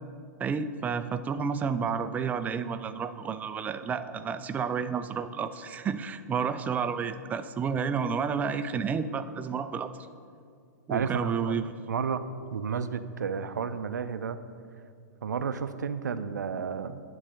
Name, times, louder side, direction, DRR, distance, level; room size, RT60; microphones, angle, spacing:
voice 1, 0.4-9.9 10.9-11.7, right 6 dB, 15° right, 11 dB, 0.4 m, -30 dB
voice 2, 10.9-12.2 12.5-14.4 15.2-17.0, right 6 dB, 80° right, 11 dB, 0.5 m, -32 dB
10.0 x 3.9 x 6.3 m, 2.3 s
hypercardioid pair, 110°, 9 cm